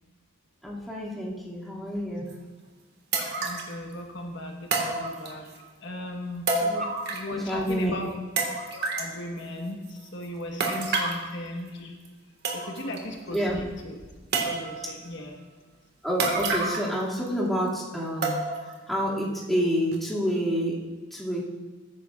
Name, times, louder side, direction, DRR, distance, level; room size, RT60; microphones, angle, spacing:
voice 1, 0.6-2.3 6.6-6.8 7.3-8.0 13.3-13.6 16.0-18.4 18.9-20.8 21.1-21.4, equal, ahead, -6 dB, 2.3 m, -28 dB
sound 1, 2.3-2.4 3.1-3.7 4.7-5.6 6.5-7.4 7.7-7.8 8.4-9.1 10.6-11.3 12.1-12.2 12.4-13.0 13.3-13.4 14.3-14.9 16.2-17.0 17.3-17.4 18.2-18.7 19.2-19.3 19.9-20.0, right 3 dB, 55° right, 1.7 m, -28 dB
voice 2, 3.4-5.4 5.8-6.5 7.1-8.1 8.7-11.9 12.5-14.0 14.4-15.3, left 1 dB, 65° left, 1 dB, 1.3 m, -37 dB
19.5 x 10.0 x 2.4 m, 1.3 s
head